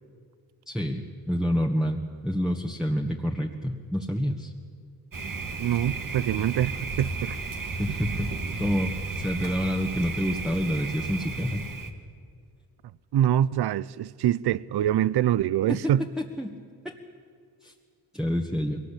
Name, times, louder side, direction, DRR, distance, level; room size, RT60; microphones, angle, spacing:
voice 1, 0.7-4.5 7.8-11.6 15.7-15.8 16.4-16.5 16.8-16.9 17.6-17.7 18.1-18.8, equal, ahead, 1.8 m, -28 dB
Thunder, 5.1-11.9, right 4 dB, 55° right, 2.1 m, -33 dB
voice 2, 5.6-7.4 13.1-16.0, right 11 dB, 75° right, 0.6 m, -24 dB
21.5 x 18.5 x 8.5 m
cardioid pair, 55°, 39 cm